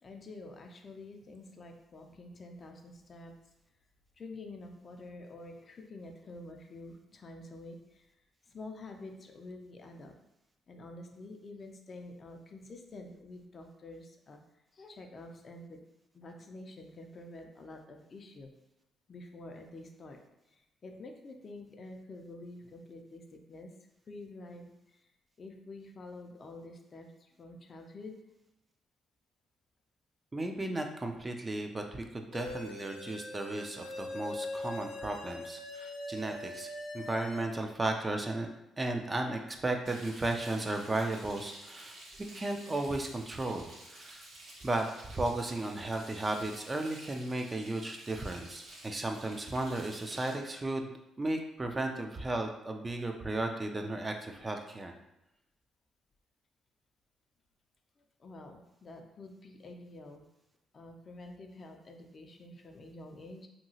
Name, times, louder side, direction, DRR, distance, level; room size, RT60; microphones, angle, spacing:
voice 1, 0.0-3.3 4.2-8.0 8.5-10.1 10.7-14.4 14.7-15.8 16.1-18.5 19.1-20.2 20.8-23.2 23.5-23.7 24.1-24.7 25.4-28.2 58.2-60.2 60.7-63.5, left 2 dB, 45° left, 4 dB, 0.4 m, -48 dB
voice 2, 30.3-38.5 38.8-42.0 42.3-43.6 43.9-44.2 44.6-50.9 51.2-54.9, right 2 dB, 25° right, 4 dB, 0.4 m, -35 dB
sound 1, 32.3-37.4, left 2 dB, 80° left, 0.7 m, -42 dB
Frying (food), 39.8-50.3, right 1 dB, 80° right, 1.0 m, -52 dB
2.8 x 2.7 x 2.7 m, 0.89 s
cardioid pair, 90°, 0 cm